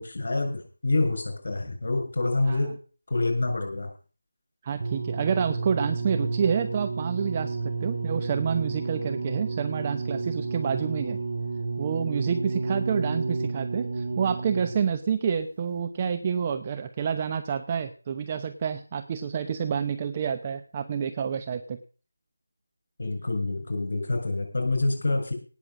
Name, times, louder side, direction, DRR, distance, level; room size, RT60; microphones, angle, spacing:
voice 1, 0.0-2.7 3.1-3.9 23.0-25.3, left 2 dB, 55° left, 2 dB, 7.2 m, -27 dB
voice 2, 4.6-11.2 11.8-21.8, right 7 dB, 25° right, 8 dB, 0.9 m, -28 dB
sound 1, 4.8-14.9 15.7-15.8, right 3 dB, 45° right, 3.8 m, -31 dB
18.0 x 6.9 x 7.5 m, 0.39 s
figure-of-eight pair, 165°, 0 cm